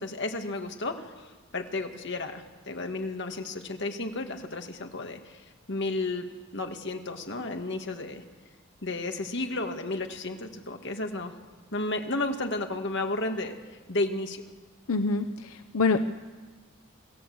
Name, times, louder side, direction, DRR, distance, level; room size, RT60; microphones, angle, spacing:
voice 1, 0.0-5.4 5.7-6.3 6.5-8.2 8.8-11.4 11.7-13.6 13.9-14.4, left 2 dB, 55° left, 4 dB, 2.0 m, -32 dB
voice 2, 14.9-16.1, left 4 dB, 85° left, 8 dB, 0.8 m, -26 dB
26.0 x 16.0 x 7.9 m, 1.3 s
head